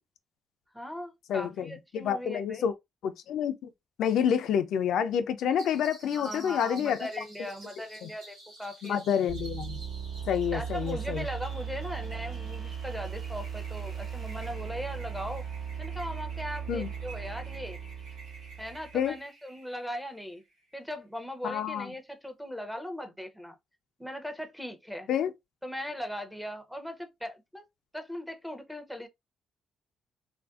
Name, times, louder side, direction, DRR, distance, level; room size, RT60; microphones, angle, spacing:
voice 1, 0.7-2.7 6.1-9.0 10.5-15.4 15.8-17.8 18.6-20.4 20.7-23.6 24.0-25.1 25.6-27.6 27.9-29.1, equal, ahead, 0.6 m, -39 dB
voice 2, 1.3-2.7 3.0-3.7 4.0-7.1 8.0-8.1 8.8-9.8 10.3-11.2 16.7-16.9 18.9-19.2 21.4-21.9 25.1-25.3, left 8 dB, 75° left, 0.4 m, -28 dB
sound 1, 5.6-20.8, right 2 dB, 90° right, 1.7 m, -52 dB
sound 2, 9.3-19.1, right 7 dB, 60° right, 1.2 m, -37 dB
3.1 x 2.5 x 2.3 m
cardioid pair, 90°, 0 cm